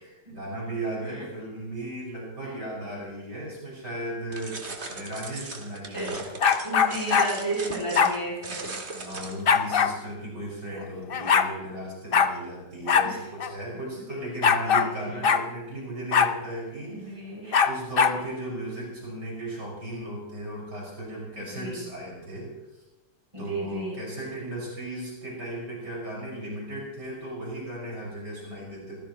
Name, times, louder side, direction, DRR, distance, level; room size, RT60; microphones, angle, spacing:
voice 1, 0.3-6.6 8.9-17.2 17.6-22.5 23.4-29.0, right 1 dB, 70° right, -5 dB, 6.3 m, -36 dB
voice 2, 2.4-2.7 5.9-6.1 6.6-8.7 13.0-13.2 16.9-17.7 21.5-21.8 23.3-24.0, right 2 dB, 15° right, -5 dB, 7.7 m, -33 dB
sound 1, 4.3-9.6, right 3 dB, 40° right, 2.0 m, -38 dB
sound 2, 6.4-7.3 7.9-8.1 9.5-9.9 10.8-10.9 11.1-11.5 12.1-12.3 12.9-13.1 13.4-13.5 14.4-14.9 15.2-15.4 16.1-16.3 17.5-18.2, left 7 dB, 60° left, 0.6 m, -21 dB
25.0 x 15.5 x 3.1 m, 1.0 s
omnidirectional pair, 1.9 m